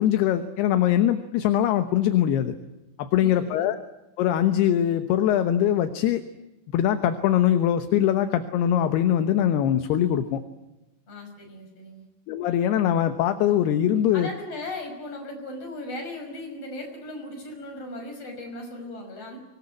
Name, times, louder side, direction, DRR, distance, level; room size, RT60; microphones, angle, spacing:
voice 1, 0.0-2.5 3.0-3.8 4.2-6.2 6.7-10.4 12.3-14.3, left 11 dB, 75° left, 9 dB, 3.0 m, -22 dB
voice 2, 3.1-3.7 11.1-12.1 14.1-19.4, left 2 dB, 35° left, 3 dB, 6.8 m, -37 dB
25.0 x 20.0 x 9.7 m, 0.98 s
omnidirectional pair, 5.0 m